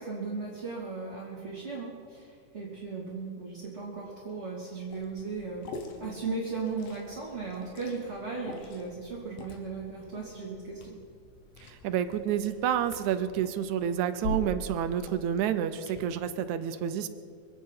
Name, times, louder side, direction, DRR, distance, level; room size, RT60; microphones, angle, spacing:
voice 1, 0.0-5.7 6.0-10.9, right 4 dB, 20° right, -7 dB, 2.8 m, -37 dB
Liquid, 4.9-16.0, left 2 dB, 85° left, 3.1 m, -44 dB
voice 2, 11.6-17.1, right 9 dB, 75° right, 10 dB, 2.0 m, -29 dB
25.0 x 9.4 x 5.7 m, 2.2 s
omnidirectional pair, 3.7 m